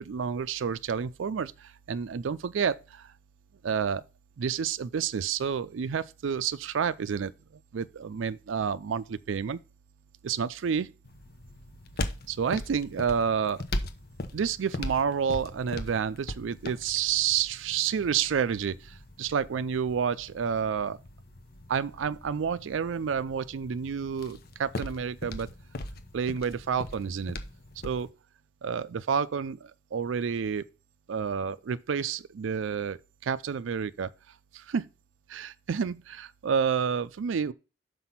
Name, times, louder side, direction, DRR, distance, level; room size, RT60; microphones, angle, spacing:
voice 1, 0.0-3.1 3.6-4.0 4.4-7.3 7.7-9.6 10.2-10.9 12.3-13.6 14.3-21.0 21.7-25.5 26.1-27.4 27.8-28.1 28.6-30.6 31.1-34.1 34.5-34.9 35.3-37.5, right 7 dB, 75° right, 0.4 m, -29 dB
sound 1, 11.0-28.1, left 1 dB, 55° left, 0.9 m, -40 dB
5.9 x 5.2 x 5.5 m
head